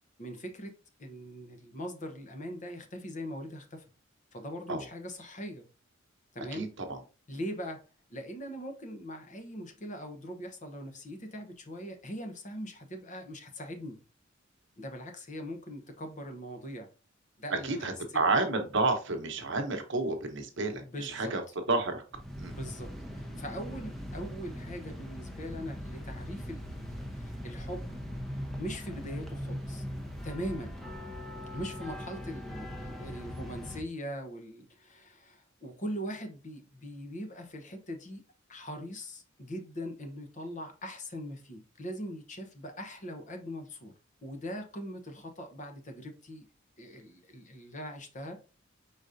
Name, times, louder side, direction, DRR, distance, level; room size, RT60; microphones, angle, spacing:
voice 1, 0.2-3.8 4.3-5.6 6.3-6.6 7.3-7.8 8.1-14.0 14.8-16.9 17.4-18.2 20.8-21.3 22.5-27.9 28.6-29.8 30.2-30.7 31.5-38.2 38.5-43.9 44.2-46.5 46.8-48.4, equal, 40° left, 0.9 m, -41 dB
voice 2, 6.5-7.0 17.6-21.4 21.7-22.0 22.4-22.6, right 3 dB, 65° right, 1.0 m, -30 dB
sound 1, 22.1-33.8, equal, ahead, 0.8 m, -40 dB
4.9 x 4.0 x 2.6 m
head